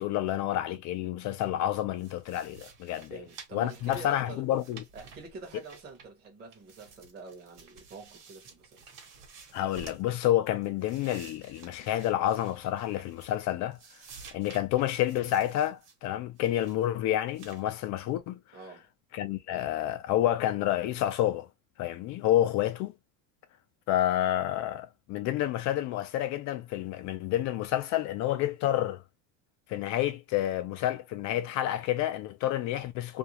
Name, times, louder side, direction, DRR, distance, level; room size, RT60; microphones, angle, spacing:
voice 1, 0.0-3.2 3.5-4.8 9.5-13.8 14.3-18.4 19.1-21.5 21.8-22.9 23.9-29.0 29.7-33.2, left 12 dB, 45° left, 0.5 m, -29 dB
sound 1, 2.0-6.3 6.5-10.1 10.5-13.5 13.7-16.0 16.4-16.9 17.3-17.6, right 5 dB, 45° right, 1.2 m, -52 dB
voice 2, 3.1-4.4 4.9-8.9 18.5-18.9, right 4 dB, 25° right, 0.9 m, -46 dB
2.6 x 2.3 x 2.8 m
cardioid pair, 155°, 40 cm